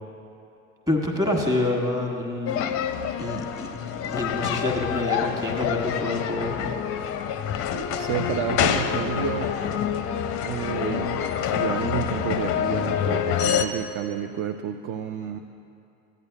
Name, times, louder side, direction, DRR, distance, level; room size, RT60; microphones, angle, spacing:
voice 1, 0.9-2.7 3.2-3.7 4.0-6.7, left 2 dB, 10° right, 1 dB, 1.4 m, -27 dB
sound 1, 2.5-13.7, left 9 dB, 35° left, 0.5 m, -27 dB
voice 2, 7.7-9.5 10.4-15.4, right 9 dB, 35° right, 6 dB, 0.4 m, -30 dB
15.0 x 8.9 x 2.4 m, 2.6 s
figure-of-eight pair, 70°, 41 cm